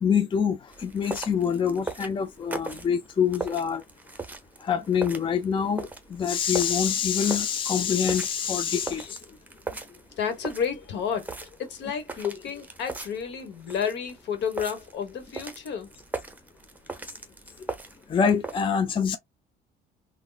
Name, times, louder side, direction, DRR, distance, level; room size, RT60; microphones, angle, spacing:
voice 1, 0.0-3.8 4.6-9.2 18.1-19.2, left 7 dB, 25° left, 0.5 m, -25 dB
sound 1, 0.7-18.6, right 3 dB, 10° right, 0.8 m, -40 dB
voice 2, 10.2-11.3 11.6-15.9, left 7 dB, 65° left, 1.2 m, -31 dB
3.5 x 2.2 x 2.4 m
supercardioid pair, 90°, 20 cm